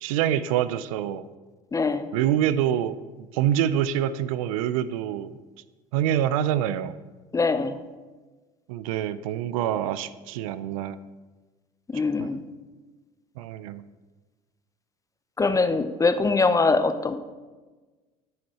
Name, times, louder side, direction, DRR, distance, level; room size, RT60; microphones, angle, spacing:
voice 1, 0.0-1.3 2.1-5.4 5.9-7.0 8.7-11.0 12.2-12.3 13.4-13.8, right 10 dB, 80° right, 15 dB, 0.4 m, -26 dB
voice 2, 1.7-2.1 7.3-7.8 11.9-12.4 15.4-17.1, left 3 dB, 20° left, 10 dB, 0.6 m, -23 dB
9.3 x 6.5 x 4.2 m, 1.3 s
hypercardioid pair, 80°, 18 cm